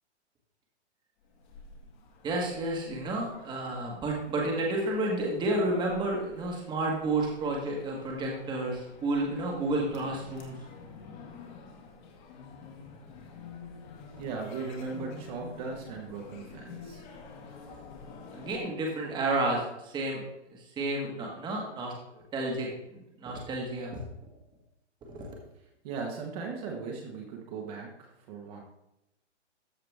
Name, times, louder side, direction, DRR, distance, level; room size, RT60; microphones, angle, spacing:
sound 1, 1.3-18.6, left 4 dB, 40° left, 1.9 m, -49 dB
voice 1, 2.2-10.5 17.7-17.8 18.3-20.2 20.5-22.7 23.2-24.0 25.1-25.3, right 2 dB, 10° right, -1 dB, 1.5 m, -31 dB
voice 2, 14.2-17.0 25.8-28.6, right 4 dB, 35° right, 0 dB, 1.4 m, -38 dB
14.0 x 4.9 x 3.5 m, 0.86 s
hypercardioid pair, 150°, 36 cm